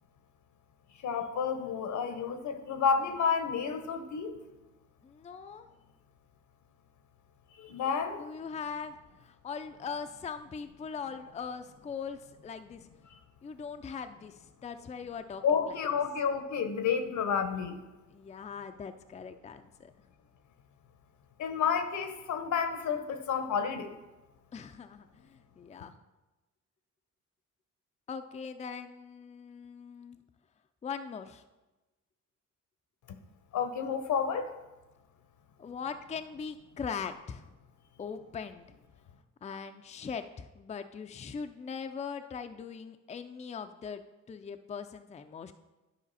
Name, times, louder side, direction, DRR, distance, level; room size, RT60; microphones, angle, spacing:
voice 1, 1.0-4.4 7.6-8.2 15.4-17.8 21.4-23.9 33.1-33.2 33.5-34.5, left 6 dB, 70° left, 9 dB, 1.0 m, -30 dB
voice 2, 5.0-5.7 8.2-12.9 13.4-15.8 18.1-19.9 24.5-25.9 28.1-30.2 30.8-31.4 35.6-37.4 38.0-38.7 39.4-45.5, left 6 dB, 25° left, 8 dB, 0.4 m, -41 dB
11.0 x 5.0 x 4.1 m, 1.1 s
cardioid pair, 90°, 30 cm